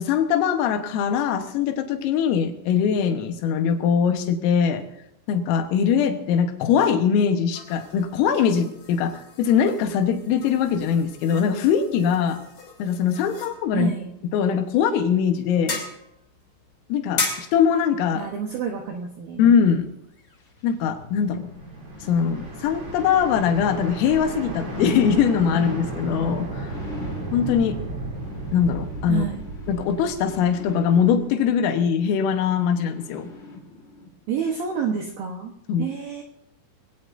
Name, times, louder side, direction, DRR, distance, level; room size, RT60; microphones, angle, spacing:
voice 1, 0.0-4.9 5.3-12.4 12.8-13.9 14.3-15.8 16.9-18.3 19.4-19.9 20.6-21.5 22.1-26.8 27.3-27.8 28.5-29.3 29.7-33.3 35.7-35.9, left 7 dB, 85° left, 6 dB, 3.9 m, -22 dB
sound 1, 7.5-20.6, left 4 dB, 40° left, 2.2 m, -37 dB
voice 2, 13.7-14.1 18.2-19.4 29.1-29.4 34.3-35.5 35.8-36.2, right 6 dB, 80° right, 2 dB, 2.1 m, -28 dB
sound 2, 20.2-34.1 34.6-34.7, left 3 dB, 55° left, 1.2 m, -40 dB
sound 3, 21.2-31.2, right 2 dB, 35° right, 3.2 m, -34 dB
22.5 x 16.5 x 2.6 m, 0.82 s
omnidirectional pair, 5.8 m